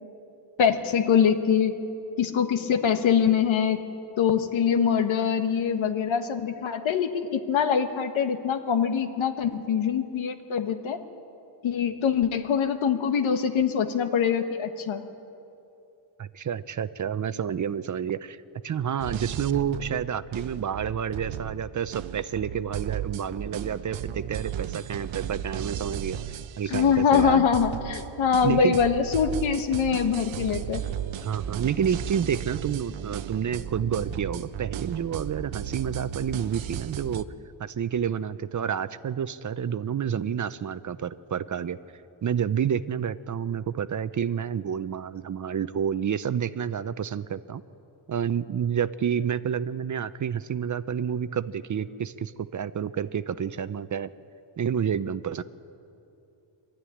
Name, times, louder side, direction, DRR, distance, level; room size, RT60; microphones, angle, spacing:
voice 1, 0.6-1.8 2.2-3.8 4.2-11.0 11.6-15.0 26.7-30.8, left 7 dB, 90° left, 7 dB, 1.5 m, -24 dB
voice 2, 16.2-18.4 18.6-26.2 26.6-27.5 28.4-28.8 31.2-37.2 37.6-41.8 42.2-47.6 48.1-54.1 54.6-55.4, right 8 dB, 40° right, 14 dB, 0.6 m, -29 dB
sound 1, 19.0-37.2, right 10 dB, 80° right, 0.8 m, -35 dB
23.5 x 13.0 x 10.0 m, 2.7 s
wide cardioid pair, 130°, 46 cm